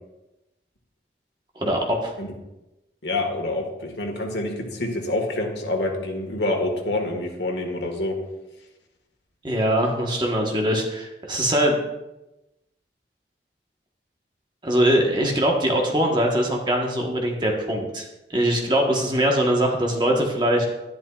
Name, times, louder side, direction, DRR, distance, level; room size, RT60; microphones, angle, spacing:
voice 1, 1.5-2.1 9.4-11.8 14.6-20.6, equal, 25° right, 0 dB, 1.3 m, -22 dB
voice 2, 3.0-8.2, left 2 dB, 80° left, 2 dB, 1.7 m, -27 dB
11.0 x 10.5 x 2.4 m, 0.97 s
head